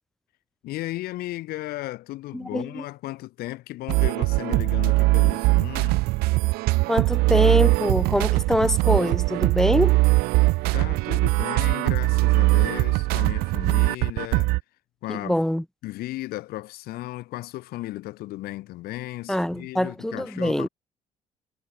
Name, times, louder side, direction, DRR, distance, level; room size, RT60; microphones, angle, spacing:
voice 1, 0.6-6.0 10.7-14.6 15.0-15.4 15.8-20.7, left 17 dB, 60° left, 6.7 m, -35 dB
voice 2, 2.3-2.8 6.9-10.0 15.1-15.6 19.3-20.7, equal, 5° left, 4.0 m, -24 dB
sound 1, 3.9-14.6, right 23 dB, 65° right, 1.6 m, -21 dB
figure-of-eight pair, 50°, 17 cm